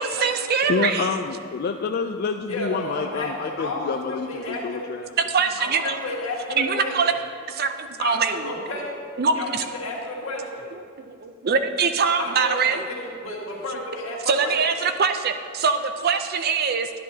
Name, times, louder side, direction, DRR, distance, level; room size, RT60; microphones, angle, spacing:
voice 1, 0.0-1.2 5.3-6.0 6.6-7.1 7.5-8.5 9.2-9.6 11.0-12.8 14.3-16.9, right 5 dB, 50° right, 0.5 m, -23 dB
voice 2, 0.7-5.1, left 5 dB, 50° left, 0.3 m, -28 dB
voice 3, 2.5-4.8 5.6-7.2 8.0-9.0 9.3-10.7 12.2-14.6, left 2 dB, 85° left, 1.8 m, -32 dB
11.0 x 10.5 x 2.8 m
head